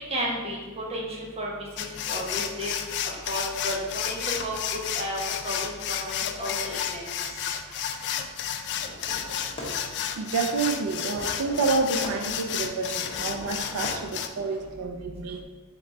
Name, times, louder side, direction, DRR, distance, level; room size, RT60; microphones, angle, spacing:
voice 1, 0.1-2.7 3.3-3.8 4.0-7.3 15.0-15.2, equal, 30° right, 0.9 m, -33 dB
sound 1, 1.8-14.3, left 9 dB, 55° left, 0.3 m, -32 dB
voice 2, 7.6-8.7 9.2-9.8 10.1-15.4, right 4 dB, 85° right, 0.4 m, -30 dB
Fireworks, 8.7-14.7, left 1 dB, 25° left, 1.0 m, -42 dB
3.7 x 3.5 x 4.0 m
head